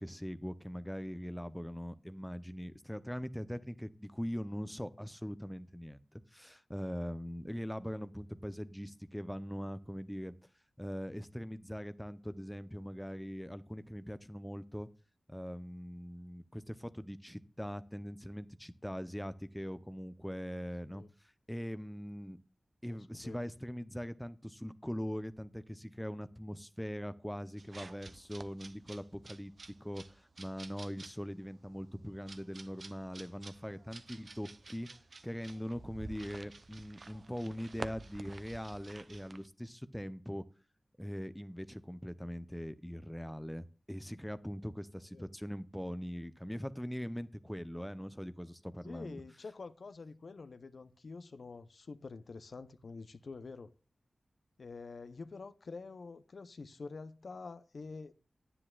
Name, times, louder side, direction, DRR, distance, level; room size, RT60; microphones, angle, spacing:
voice 1, 0.0-10.3 10.8-14.9 15.3-21.0 21.5-22.4 22.8-29.5 29.8-34.9 35.2-40.4 41.0-49.2, equal, 5° left, 0.5 m, -41 dB
voice 2, 22.8-23.4 45.1-45.2 48.8-53.7 54.6-58.1, left 4 dB, 65° left, 0.5 m, -47 dB
sound 1, 27.6-39.5, right 3 dB, 55° right, 0.6 m, -51 dB
9.9 x 9.7 x 2.3 m
wide cardioid pair, 85°, 0 cm